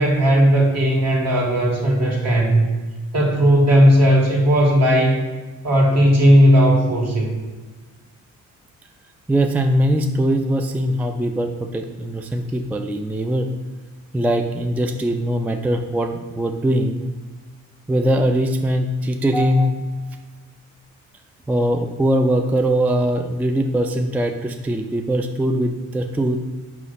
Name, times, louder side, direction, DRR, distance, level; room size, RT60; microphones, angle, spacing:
voice 1, 0.0-2.7 3.1-5.2 5.6-7.4, equal, 60° right, -1 dB, 1.8 m, -16 dB
voice 2, 9.3-13.5 14.1-17.1 17.9-20.0 21.5-26.4, right 1 dB, 5° right, 5 dB, 0.3 m, -21 dB
5.7 x 3.1 x 5.5 m, 1.3 s
cardioid pair, 90°, 30 cm